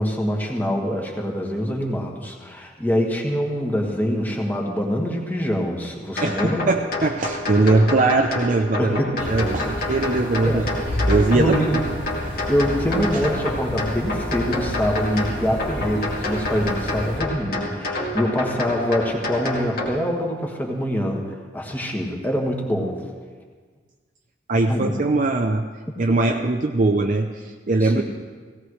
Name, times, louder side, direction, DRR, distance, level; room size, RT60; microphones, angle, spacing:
voice 1, 0.0-6.7 8.8-9.7 10.4-10.8 11.3-11.9 12.5-21.3 21.5-23.0 24.7-25.1 27.8-28.0, equal, 10° left, 0 dB, 1.7 m, -25 dB
sound 1, 6.2-19.9, left 2 dB, 60° left, 2.2 m, -29 dB
voice 2, 6.2-9.0 9.3-10.6 11.1-11.8 12.2-12.4 24.5-25.6 26.0-28.0, right 2 dB, 45° right, 3 dB, 0.6 m, -21 dB
sound 2, 9.2-17.2, equal, 75° left, 1.8 m, -30 dB
17.0 x 17.0 x 3.2 m, 1.5 s
head